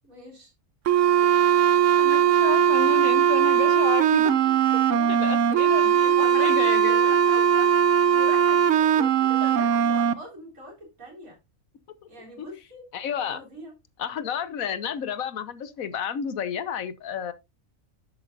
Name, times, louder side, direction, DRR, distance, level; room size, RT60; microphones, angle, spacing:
voice 1, 0.0-0.5 4.4-5.2 5.9-7.7 8.1-11.4 12.1-12.9 13.3-13.7, right 1 dB, 90° right, 4.1 m, -42 dB
sound 1, 0.9-10.1, right 9 dB, 70° right, 1.1 m, -20 dB
voice 2, 2.0-4.3 4.9-7.2 9.4-9.6 12.4-12.5 12.9-13.4 14.0-17.3, left 8 dB, 90° left, 1.4 m, -31 dB
10.5 x 8.1 x 2.6 m
omnidirectional pair, 1.4 m